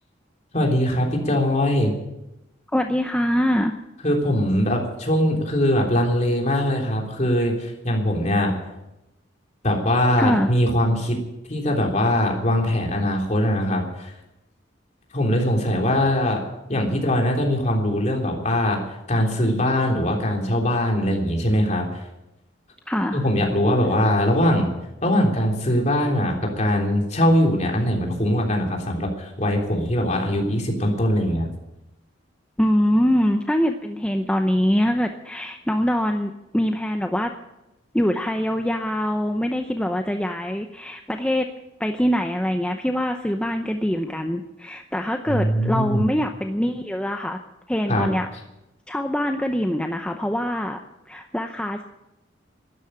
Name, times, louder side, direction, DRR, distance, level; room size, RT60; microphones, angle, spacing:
voice 1, 0.5-1.9 4.0-8.5 9.6-11.2 11.5-14.1 15.1-16.4 16.7-22.0 23.1-24.7 25.0-31.5 45.3-46.1 47.9-48.1, left 1 dB, 40° left, 0 dB, 3.4 m, -21 dB
voice 2, 2.7-3.8 10.2-10.5 22.9-23.3 32.6-37.3 37.9-41.5 41.8-47.4 47.7-48.3 48.9-50.8 51.1-51.8, equal, 5° left, 4 dB, 0.7 m, -23 dB
12.5 x 11.0 x 10.0 m, 0.93 s
head